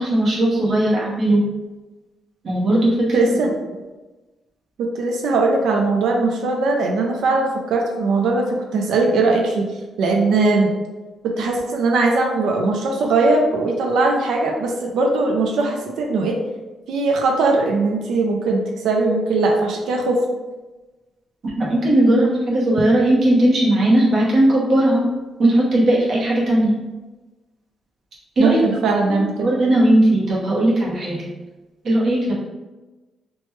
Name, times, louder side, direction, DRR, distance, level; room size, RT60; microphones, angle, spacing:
voice 1, 0.0-1.4 2.4-3.2 21.6-25.1 25.4-26.7 28.4-31.3 31.8-32.3, right 1 dB, 55° right, -6 dB, 0.9 m, -17 dB
voice 2, 3.1-3.5 4.8-8.5 8.7-9.7 10.0-10.7 11.2-16.4 16.9-20.2 28.4-29.5, right 3 dB, 85° right, 1 dB, 0.4 m, -20 dB
3.0 x 2.1 x 3.1 m, 1.1 s
cardioid pair, 105°, 0 cm